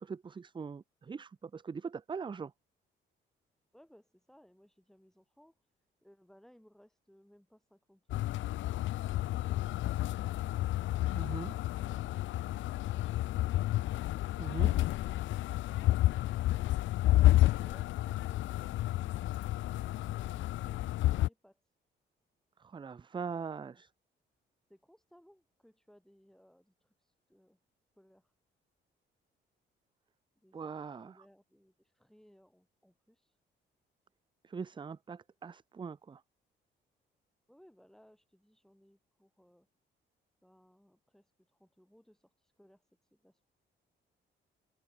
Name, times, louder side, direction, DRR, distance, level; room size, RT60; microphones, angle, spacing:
voice 1, 0.0-2.5 11.1-11.6 14.4-14.7 22.6-23.9 30.5-31.2 34.4-36.2, right 5 dB, 25° right, 0.6 m, -41 dB
voice 2, 3.7-5.6 6.0-10.7 24.7-27.6 28.0-28.3 30.3-30.6 31.0-33.3 37.5-39.7 40.4-42.8 43.1-43.4, equal, ahead, 6.5 m, -64 dB
sound 1, 8.1-21.3, left 15 dB, 75° left, 0.5 m, -30 dB
open air
cardioid pair, 90°, 20 cm